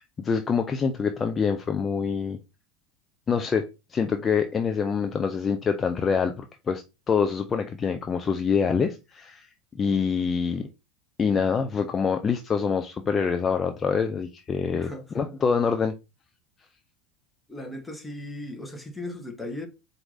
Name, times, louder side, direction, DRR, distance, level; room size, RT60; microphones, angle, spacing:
voice 1, 0.0-2.4 3.3-9.5 9.7-10.7 11.2-15.9, left 6 dB, 30° left, 0.5 m, -26 dB
voice 2, 14.7-15.2 17.5-19.7, left 1 dB, 10° left, 1.2 m, -37 dB
4.5 x 2.7 x 3.9 m
hypercardioid pair, 80°, 0 cm